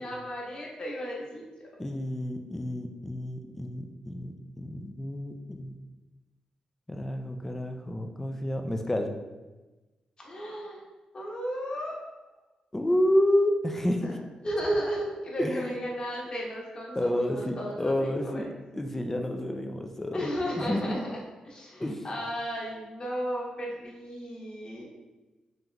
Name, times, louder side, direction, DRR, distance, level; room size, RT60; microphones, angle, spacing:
voice 1, 0.0-1.7 10.2-10.8 11.1-12.0 14.0-14.1 14.4-18.4 20.1-21.2 21.4-24.9, equal, 40° left, -3 dB, 1.2 m, -34 dB
voice 2, 1.8-5.7 6.9-9.1 12.7-14.2 15.4-15.8 17.0-18.5 18.7-20.3 20.6-21.0 21.8-22.1, left 1 dB, 15° left, 4 dB, 0.4 m, -29 dB
3.7 x 2.9 x 3.3 m, 1.1 s
cardioid pair, 95°, 2 cm